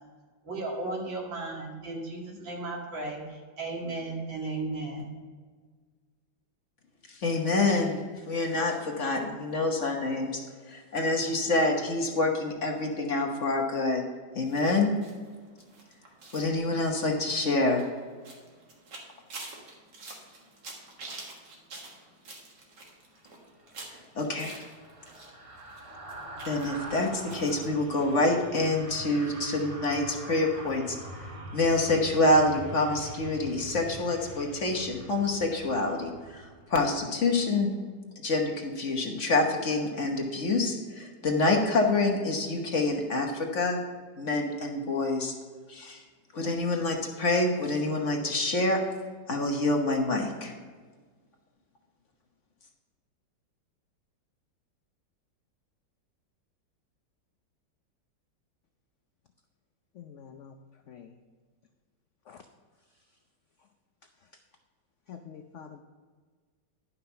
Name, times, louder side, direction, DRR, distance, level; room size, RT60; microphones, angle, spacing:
voice 1, 0.4-5.1, right 2 dB, 90° right, -2 dB, 2.9 m, -35 dB
voice 2, 7.1-14.0 14.3-14.9 16.3-17.8 23.9-24.6 26.4-31.3 31.5-37.7 38.2-43.8 44.2-45.3 45.7-46.0 46.3-48.8 49.3-50.5, left 2 dB, 45° left, 1 dB, 1.3 m, -27 dB
sound 1, 14.5-25.3 25.6-27.7 28.0-28.1 28.4-28.5, right 3 dB, 65° right, 2.2 m, -47 dB
sound 2, 23.6-37.0 37.3-37.5, right 2 dB, 30° right, 0.6 m, -44 dB
voice 3, 59.9-61.2 62.3-62.4 64.2-64.3 65.1-65.8, left 7 dB, 80° left, 6 dB, 0.6 m, -47 dB
11.0 x 5.8 x 5.7 m, 1.5 s
omnidirectional pair, 2.0 m